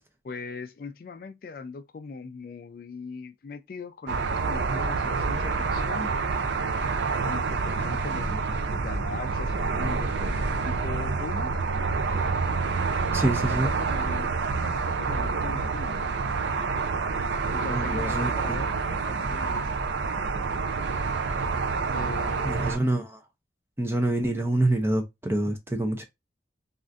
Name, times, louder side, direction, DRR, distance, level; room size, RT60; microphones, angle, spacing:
voice 1, 0.2-6.1 7.2-11.6 13.1-14.3 14.6-16.0 17.5-19.7 21.9-22.8, left 4 dB, 50° left, 0.3 m, -40 dB
sound 1, 4.1-22.8, right 4 dB, 75° right, 0.5 m, -27 dB
voice 2, 13.1-13.7 17.7-18.3 22.4-23.2 23.8-26.0, right 1 dB, 15° right, 0.5 m, -26 dB
3.4 x 2.5 x 2.4 m
head